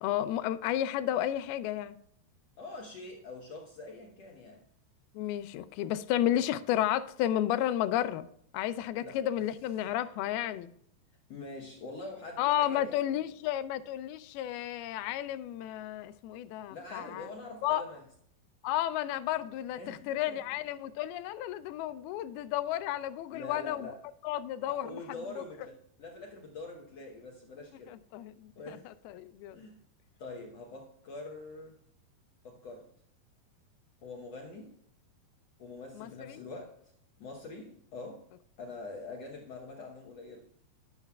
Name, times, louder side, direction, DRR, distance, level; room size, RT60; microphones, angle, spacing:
voice 1, 0.0-2.0 5.1-8.3 8.5-10.7 12.4-17.3 17.6-17.8 18.6-23.9 24.2-25.4 27.9-29.6 35.9-36.4, left 12 dB, 90° left, 2.5 m, -32 dB
voice 2, 2.6-4.6 6.3-6.4 9.0-9.2 11.3-13.0 16.7-18.0 19.8-20.4 23.3-24.0 24.7-27.9 28.6-28.9 29.5-29.8 30.2-31.8 32.4-32.9 34.0-34.7 35.6-36.9 37.2-38.3 38.6-40.4, left 3 dB, 65° left, 1.6 m, -44 dB
11.5 x 11.0 x 2.3 m
omnidirectional pair, 4.3 m